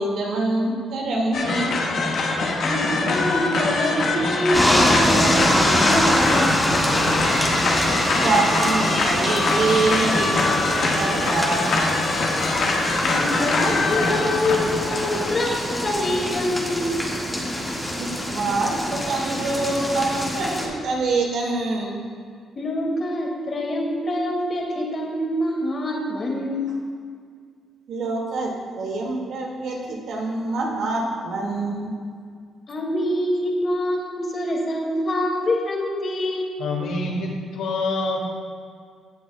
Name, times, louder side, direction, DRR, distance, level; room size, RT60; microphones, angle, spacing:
voice 1, 0.0-1.7 8.1-12.0 17.9-22.0 27.9-31.9, right 3 dB, 75° right, -1 dB, 1.9 m, -25 dB
sound 1, 1.3-15.3, left 3 dB, 65° left, 1.4 m, -24 dB
voice 2, 2.6-6.9 13.0-16.9 22.6-26.8 32.7-36.5, left 1 dB, 40° left, -1 dB, 2.1 m, -25 dB
sound 2, 4.5-20.7, left 1 dB, 10° left, 1.6 m, -24 dB
voice 3, 36.6-38.2, left 2 dB, 85° left, 0 dB, 1.7 m, -26 dB
16.5 x 7.5 x 2.2 m, 2.1 s
cardioid pair, 90°, 0 cm